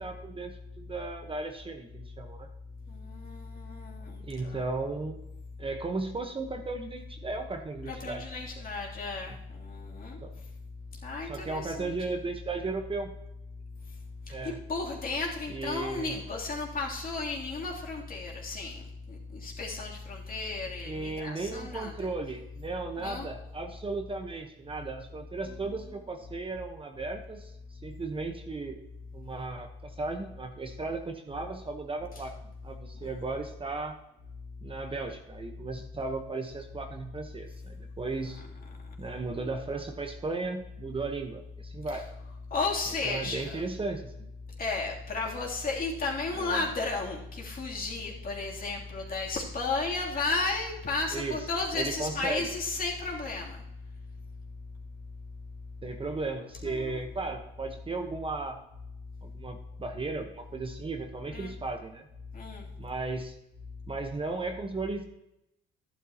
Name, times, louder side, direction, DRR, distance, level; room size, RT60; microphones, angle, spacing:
voice 1, 0.0-2.5 4.2-5.2 5.6-8.2 8.6-8.7 9.3-9.4 10.2-10.3 11.2-13.1 14.3-14.6 15.5-16.2 20.8-28.8 29.1-34.0 34.6-38.4 39.0-42.1 43.0-44.3 46.4-46.7 51.1-51.5 51.7-52.5 55.8-58.6 59.2-62.1 62.8-63.4 63.9-65.1, right 3 dB, 25° right, 4 dB, 1.1 m, -36 dB
voice 2, 3.0-4.1 4.5-4.6 7.8-9.3 9.6-10.2 11.0-11.9 14.7-18.8 19.1-21.9 23.0-23.3 42.5-43.6 44.6-53.6 56.6-57.0 61.3-61.5 62.3-62.6, left 3 dB, 45° left, -3 dB, 3.1 m, -33 dB
12.5 x 11.0 x 2.9 m, 0.86 s
cardioid pair, 100°, 21 cm